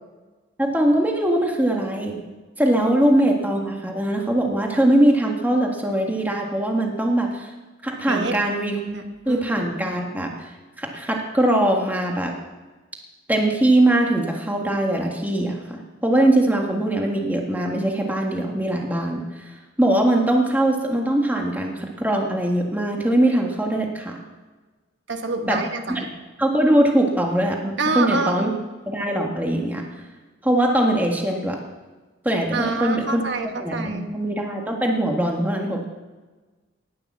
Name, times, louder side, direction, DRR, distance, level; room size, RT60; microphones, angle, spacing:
voice 1, 0.6-2.2 2.6-7.5 7.8-8.8 9.2-10.5 10.8-12.3 13.3-19.2 19.8-24.2 25.5-25.6 25.9-26.0 26.4-28.5 28.9-29.8 30.4-31.6 32.2-33.2 33.6-35.9, right 1 dB, 10° right, 0 dB, 1.6 m, -21 dB
voice 2, 8.1-8.4 8.9-9.9 25.1-26.0 27.8-28.6 32.5-34.2, right 3 dB, 65° right, 6 dB, 1.5 m, -27 dB
19.5 x 6.8 x 7.4 m, 1.3 s
head